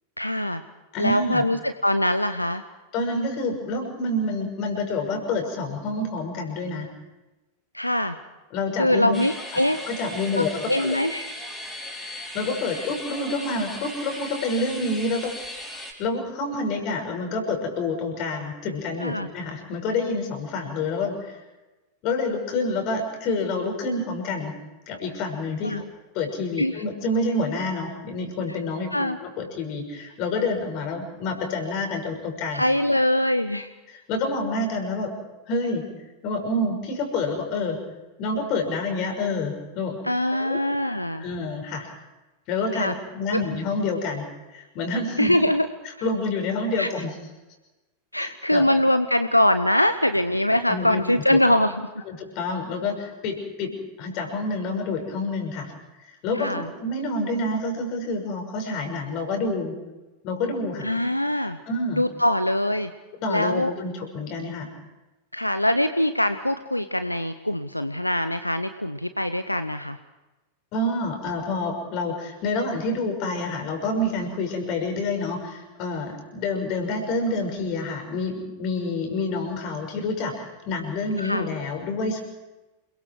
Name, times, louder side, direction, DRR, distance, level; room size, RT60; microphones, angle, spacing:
voice 1, 0.2-0.6 1.0-2.6 7.7-8.2 8.8-9.8 10.3-11.3 19.0-19.3 25.6-25.8 26.6-26.8 28.9-29.2 32.5-33.7 40.0-41.2 42.7-42.9 43.3-43.4 45.2-45.7 46.8-46.9 48.1-51.8 56.3-56.7 60.8-61.6 61.9-62.9 63.3-63.7 65.3-70.0 81.2-81.5, left 1 dB, 85° left, 11 dB, 0.7 m, -23 dB
voice 2, 0.9-1.4 2.9-6.9 8.5-9.2 9.9-11.0 12.3-15.3 16.0-21.4 22.0-24.5 24.9-25.8 26.1-32.6 33.9-35.1 35.5-35.9 36.2-37.8 38.2-40.0 40.3-40.6 41.2-41.9 42.5-44.2 44.5-45.3 46.0-47.1 48.2-48.7 50.7-51.0 51.3-51.4 52.1-55.7 56.0-59.8 60.2-60.9 61.6-62.0 63.2-64.7 70.7-82.2, left 2 dB, 40° left, 4 dB, 6.1 m, -28 dB
sound 1, 9.1-15.9, left 1 dB, 10° left, 5.7 m, -37 dB
28.5 x 22.0 x 4.8 m, 1.1 s
figure-of-eight pair, 90°, 0 cm